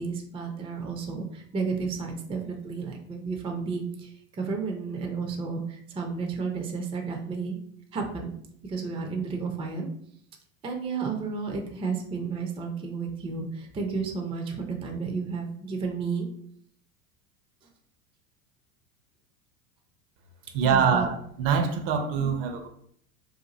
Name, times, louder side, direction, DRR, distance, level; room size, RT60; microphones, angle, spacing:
voice 1, 0.0-7.6 7.9-8.3 8.6-9.9 10.6-16.3 20.6-21.1, right 5 dB, 15° right, 0.4 m, -32 dB
voice 2, 20.5-22.7, right 6 dB, 60° right, 0.7 m, -24 dB
2.6 x 2.5 x 3.8 m
hypercardioid pair, 90°, 42 cm